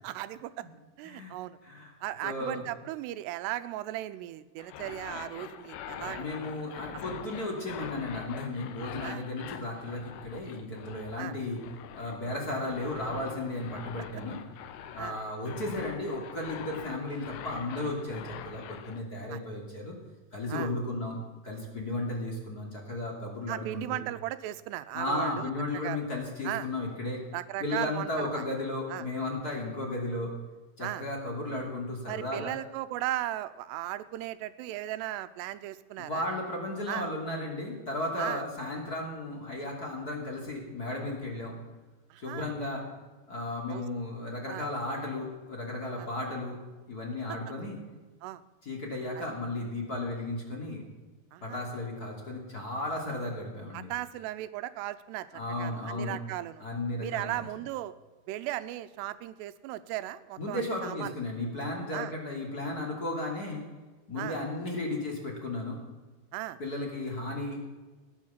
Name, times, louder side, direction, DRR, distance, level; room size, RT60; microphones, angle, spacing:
voice 1, 0.0-0.6 1.0-1.6 2.0-6.4 9.0-9.2 11.2-11.3 15.0-15.2 19.3-19.4 20.5-20.7 23.5-26.1 26.4-26.7 27.3-28.4 28.9-29.1 30.8-31.0 32.1-36.3 36.9-37.1 38.2-38.4 42.1-42.5 43.7-43.8 44.5-44.7 46.0-46.1 47.6-47.7 48.2-48.4 51.3-51.6 53.7-55.3 55.6-56.6 57.0-57.9 58.3-61.1 61.9-62.1 64.2-64.4 66.3-66.6, right 14 dB, 85° right, 13 dB, 2.8 m, -37 dB
voice 2, 2.2-2.7 6.2-11.6 11.9-14.4 14.9-19.9 20.3-21.2 21.4-24.0 24.9-27.2 27.6-30.3 30.8-32.5 36.0-41.6 42.2-42.9 43.3-46.6 46.9-47.8 48.6-50.8 51.4-53.9 55.3-56.2 56.6-57.4 60.4-63.6 64.1-65.8 66.6-67.6, left 2 dB, 25° left, -1 dB, 2.5 m, -34 dB
sound 1, 4.6-19.0, left 9 dB, 85° left, 3.1 m, -44 dB
17.0 x 10.0 x 7.3 m, 1.3 s
omnidirectional pair, 4.8 m